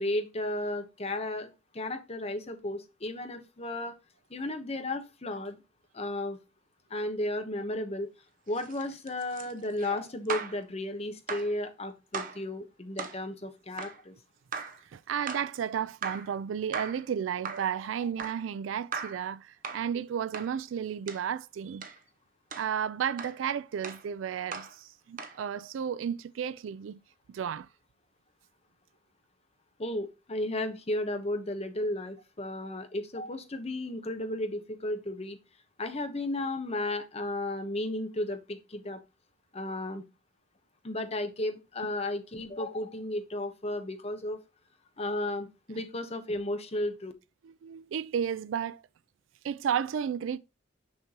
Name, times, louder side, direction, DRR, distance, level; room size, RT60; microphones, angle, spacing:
voice 1, 0.0-4.0 4.3-5.6 5.9-6.4 6.9-8.1 8.5-14.1 29.8-35.4 35.8-39.0 39.5-40.0 40.8-44.4 45.0-47.1, left 1 dB, 35° left, 1.0 m, -34 dB
sound 1, 8.5-10.6 11.3-11.6 12.1-12.4 13.0-13.2 13.8-14.0 14.5-14.8 15.3-15.5 16.0-16.3 16.7-17.1 17.4-17.7 18.2-18.5 18.9-19.2 19.6-19.9 20.3-20.5 21.1-21.3 21.8-22.0 22.5-22.7 23.2-23.4 23.8-24.1 24.5-24.8 25.2-25.4, right 5 dB, 45° right, 0.8 m, -38 dB
voice 2, 14.8-21.9 22.6-27.0 27.3-27.7 32.6-32.8 47.4-48.8 49.4-50.4, right 8 dB, 85° right, 0.3 m, -33 dB
6.4 x 5.9 x 2.9 m
head